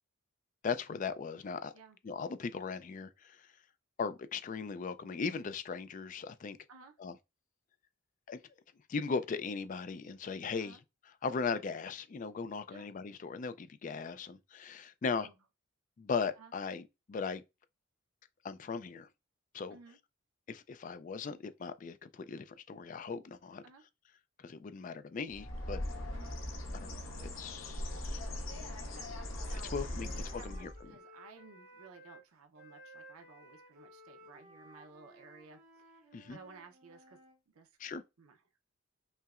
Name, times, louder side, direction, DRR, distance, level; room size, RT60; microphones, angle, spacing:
voice 1, 0.6-1.7 2.0-3.5 4.0-6.6 7.0-7.2 8.3-8.4 8.9-10.8 11.2-15.3 16.0-17.4 18.4-19.1 19.5-19.8 20.5-23.6 24.4-25.8 26.7-28.2 29.7-30.7 36.1-36.4 37.8-38.0, left 5 dB, 35° left, 0.3 m, -38 dB
voice 2, 15.0-15.3 16.4-16.5 19.7-20.0 23.6-23.8 26.1-26.4 29.5-37.2 37.5-37.9 38.2-38.4, right 4 dB, 85° right, 0.6 m, -56 dB
Bird, 25.3-30.9, left 1 dB, 65° left, 0.8 m, -40 dB
Wind instrument woodwind instrument, 27.9-32.2 32.6-37.4, right 1 dB, 45° right, 1.1 m, -58 dB
5.4 x 2.0 x 2.4 m
head